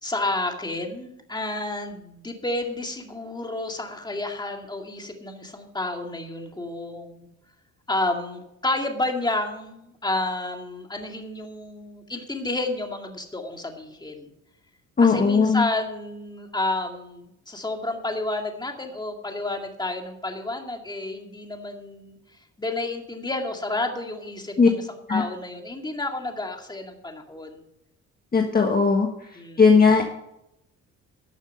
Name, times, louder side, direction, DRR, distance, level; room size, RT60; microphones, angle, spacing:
voice 1, 0.0-7.3 7.9-14.3 15.0-22.2 22.6-27.6 29.3-29.9, left 2 dB, 15° left, 3 dB, 2.2 m, -30 dB
voice 2, 15.0-15.6 24.6-24.7 25.1-25.2 28.3-29.1 29.6-30.0, left 5 dB, 30° left, 2 dB, 1.5 m, -17 dB
12.5 x 7.2 x 5.4 m, 0.81 s
cardioid pair, 90°, 30 cm